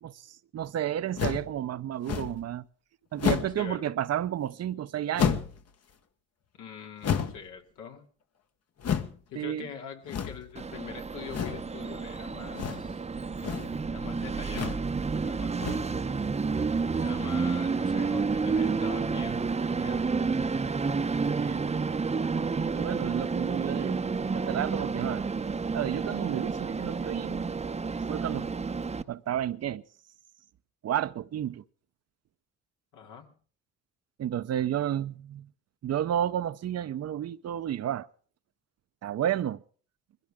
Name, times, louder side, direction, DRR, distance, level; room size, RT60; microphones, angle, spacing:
voice 1, 0.0-2.7 3.1-5.4 9.4-9.7 17.1-17.3 21.4-21.6 22.5-24.0 24.3-25.2 25.7-27.6 28.1-28.5 29.1-29.8 30.8-31.6 34.2-35.5 35.8-38.1 39.0-39.6, right 11 dB, 55° right, 0.7 m, -31 dB
sound 1, 1.2-1.5 2.1-2.4 3.2-3.6 5.1-5.6 7.0-7.5 8.8-9.2 10.1-10.5 11.3-11.7 12.5-13.0 13.3-13.8 14.5-14.9 15.5-16.0, left 8 dB, 55° left, 1.2 m, -30 dB
voice 2, 3.6-3.9 6.5-8.1 9.3-13.0 13.8-14.8 15.1-15.5 16.9-19.4 19.8-20.1 32.9-33.3, left 7 dB, 85° left, 2.5 m, -44 dB
Train, 10.6-29.0, right 4 dB, 20° right, 0.7 m, -30 dB
21.0 x 16.0 x 3.6 m
cardioid pair, 90°, 30 cm